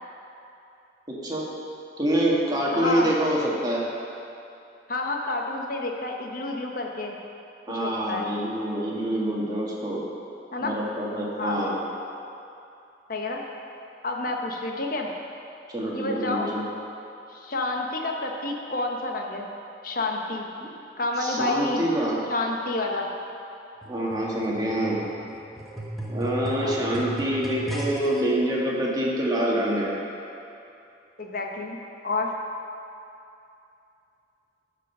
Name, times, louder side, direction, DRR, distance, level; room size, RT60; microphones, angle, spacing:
voice 1, 1.1-1.5 2.0-3.8 7.7-10.0 10.6-11.8 15.7-16.6 21.2-22.2 23.9-25.0 26.1-29.9, right 1 dB, 20° right, -4 dB, 1.6 m, -26 dB
voice 2, 2.7-3.1 4.9-7.2 7.7-8.3 10.5-10.7 11.4-11.6 13.1-13.4 14.0-15.1 15.9-16.5 17.3-19.5 19.8-20.5 21.0-21.9 22.3-23.1 26.6-26.8 31.2-32.3, left 2 dB, 55° left, 1 dB, 1.0 m, -29 dB
sound 1, 23.8-28.2 29.0-29.1, right 1 dB, ahead, 1.4 m, -35 dB
12.5 x 5.2 x 5.5 m, 2.7 s
head